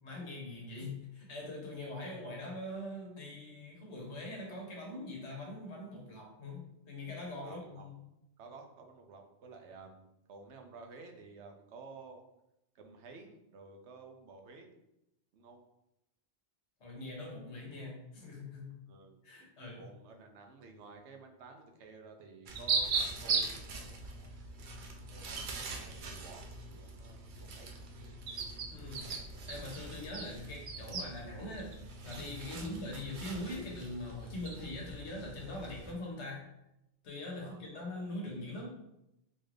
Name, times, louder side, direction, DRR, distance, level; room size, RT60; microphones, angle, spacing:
voice 1, 0.0-7.9 16.8-18.7 19.2-19.9 26.1-26.2 28.7-29.1 29.5-31.7 32.0-36.4 37.0-38.7, left 1 dB, 75° left, -1 dB, 1.3 m, -42 dB
voice 2, 7.4-7.9 8.4-12.2 12.7-14.7 15.3-15.6 18.9-19.2 19.8-24.3 25.1-27.7 32.5-32.7 37.4-37.8, right 4 dB, 80° right, 4 dB, 0.9 m, -53 dB
sound 1, 22.5-35.9, right 4 dB, 55° right, 0.6 m, -39 dB
3.9 x 2.5 x 3.2 m, 0.86 s
omnidirectional pair, 1.2 m